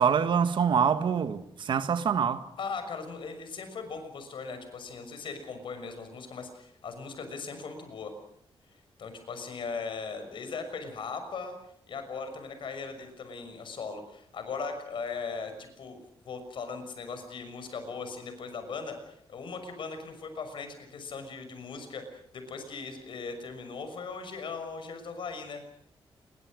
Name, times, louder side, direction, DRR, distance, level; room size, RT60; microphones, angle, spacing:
voice 1, 0.0-2.4, right 7 dB, 60° right, 1.7 m, -25 dB
voice 2, 2.6-8.1 9.0-11.5 11.9-16.0 16.2-25.6, left 4 dB, 65° left, 6.1 m, -39 dB
28.5 x 23.0 x 6.5 m
wide cardioid pair, 165°, 9 cm